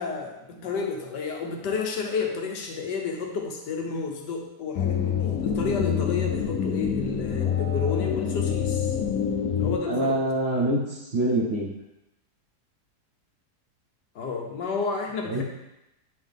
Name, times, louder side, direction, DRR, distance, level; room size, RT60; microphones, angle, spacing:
voice 1, 0.0-8.9 9.6-10.3 14.1-15.4, left 5 dB, 85° left, 1 dB, 1.6 m, -31 dB
sound 1, 4.8-9.8, left 8 dB, 70° left, 1.0 m, -26 dB
voice 2, 9.9-11.7 15.3-15.4, right 1 dB, 45° right, -7 dB, 1.2 m, -25 dB
8.4 x 3.9 x 3.5 m, 0.90 s
omnidirectional pair, 1.8 m